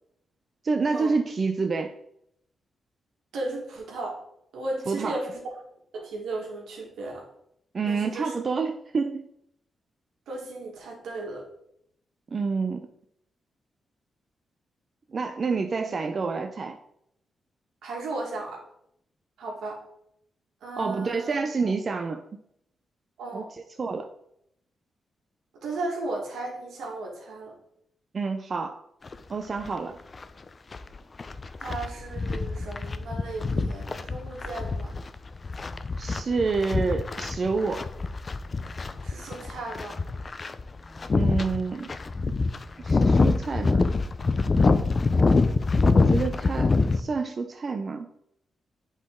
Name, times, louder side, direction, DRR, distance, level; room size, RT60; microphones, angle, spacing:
voice 1, 0.6-1.9 4.9-5.2 7.7-9.2 12.3-12.9 15.1-16.8 20.8-22.2 23.3-24.1 28.1-28.8 29.3-29.9 36.0-37.9 41.2-41.9 42.2-42.4 42.8-43.9 45.9-48.1, right 4 dB, 45° right, 6 dB, 0.5 m, -28 dB
voice 2, 3.3-4.2 4.5-5.4 5.9-7.3 7.8-8.3 10.3-11.4 17.8-18.6 19.4-19.8 20.6-21.4 23.2-23.5 25.6-27.5 31.6-34.9 39.0-40.0, right 2 dB, 90° right, 0 dB, 1.6 m, -35 dB
Walking in the mountains, 29.1-29.2 29.6-29.7 30.1-47.0, left 3 dB, 40° left, 0.4 m, -25 dB
8.1 x 3.9 x 3.7 m, 0.74 s
cardioid pair, 85°, 0 cm